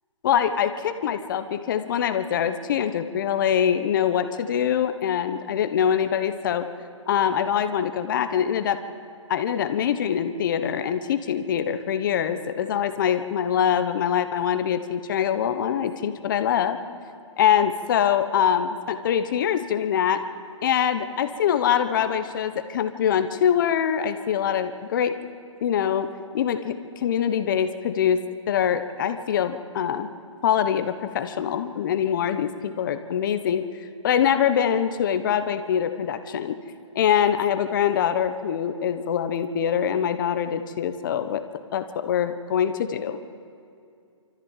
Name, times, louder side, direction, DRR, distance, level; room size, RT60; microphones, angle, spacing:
voice 1, 0.2-6.7 7.1-8.8 9.3-16.8 17.4-20.2 20.6-25.1 25.6-26.1 26.3-28.2 28.5-30.1 30.4-33.6 34.0-36.6 36.9-41.4 41.7-43.2, left 9 dB, 40° left, 9 dB, 1.2 m, -24 dB
26.0 x 14.0 x 7.4 m, 2.4 s
hypercardioid pair, 155°, 16 cm